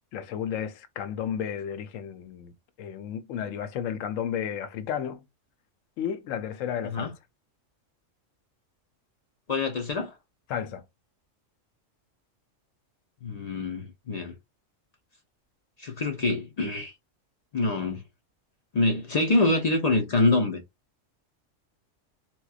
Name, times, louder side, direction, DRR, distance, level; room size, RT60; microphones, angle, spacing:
voice 1, 0.1-2.5 2.8-5.2 6.0-7.1 10.5-10.8, left 8 dB, 80° left, 0.9 m, -32 dB
voice 2, 9.5-10.2 13.2-14.3 15.8-16.9 17.5-18.0 18.7-20.6, left 2 dB, 50° left, 0.4 m, -25 dB
4.3 x 2.2 x 2.4 m
omnidirectional pair, 1.3 m